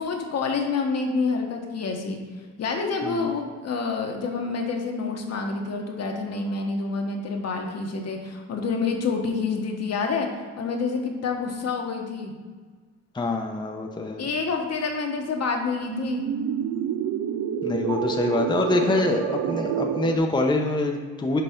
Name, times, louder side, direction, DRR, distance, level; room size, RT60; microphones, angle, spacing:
voice 1, 0.0-2.2 2.6-10.3 10.6-12.3 14.2-16.3 18.7-18.8, left 4 dB, 55° left, 2 dB, 1.2 m, -28 dB
voice 2, 13.1-14.3 17.6-21.4, left 2 dB, 15° left, 2 dB, 0.7 m, -25 dB
sound 1, 15.8-20.2, right 8 dB, 85° right, 0.6 m, -28 dB
5.5 x 4.0 x 5.7 m, 1.5 s
cardioid pair, 90°, 30 cm